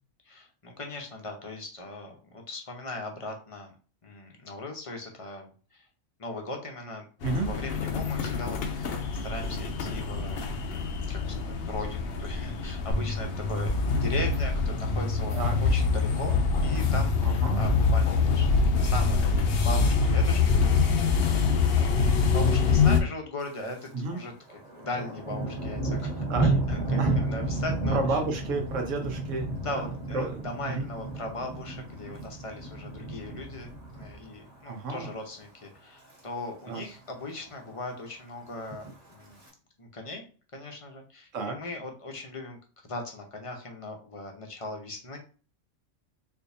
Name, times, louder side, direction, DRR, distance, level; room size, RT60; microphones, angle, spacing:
voice 1, 0.2-3.7 4.0-5.9 6.2-10.4 10.7-18.5 18.7-19.2 19.6-21.0 21.7-22.0 22.3-24.3 24.8-28.2 29.6-33.7 34.0-39.4 39.8-40.2 40.5-42.6 42.9-45.2, left 2 dB, 35° left, 2 dB, 0.6 m, -39 dB
sound 1, 7.2-23.0, left 5 dB, 60° left, 0.7 m, -26 dB
sound 2, 12.9-20.9, equal, 85° left, 1.3 m, -31 dB
voice 2, 17.2-17.7 23.9-24.2 26.3-26.5 27.0-27.2 27.9-30.9 34.7-35.1 36.7-36.8 41.3-41.6, right 3 dB, 75° right, 3 dB, 1.2 m, -31 dB
Thunder, 23.4-23.9 24.2-34.6 35.0-35.3 35.8-36.2 36.5-36.6 36.7-36.8 37.2-37.8 38.6-39.5, right 2 dB, 30° right, 1.5 m, -32 dB
4.3 x 2.6 x 2.7 m, 0.38 s
omnidirectional pair, 1.3 m